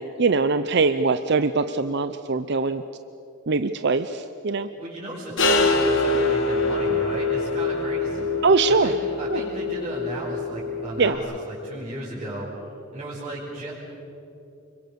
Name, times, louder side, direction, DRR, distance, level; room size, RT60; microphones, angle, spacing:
voice 1, 0.0-2.8 3.5-4.7 8.4-8.9 9.3-9.4 11.0-11.2, right 4 dB, 60° right, 10 dB, 0.7 m, -22 dB
voice 2, 4.8-8.3 8.8-12.5 12.9-13.7, right 1 dB, 30° right, -7 dB, 5.4 m, -35 dB
sound 1, 5.4-11.1, left 3 dB, 70° left, 2.8 m, -24 dB
29.5 x 23.0 x 7.0 m, 3.0 s
head